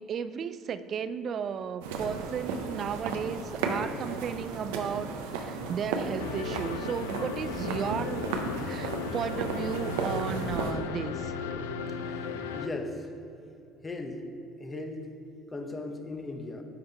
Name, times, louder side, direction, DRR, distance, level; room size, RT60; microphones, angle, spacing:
voice 1, 0.0-8.3 8.6-11.3, right 7 dB, 50° right, 14 dB, 0.3 m, -34 dB
sound 1, 1.8-10.7, right 4 dB, 75° right, 0.7 m, -34 dB
sound 2, 6.2-12.7, left 5 dB, 80° left, 0.3 m, -36 dB
voice 2, 12.5-13.0 13.8-14.2 14.6-15.1 15.5-16.6, left 2 dB, 25° left, 5 dB, 0.9 m, -37 dB
9.5 x 3.7 x 4.5 m, 2.7 s
hypercardioid pair, 65°, 0 cm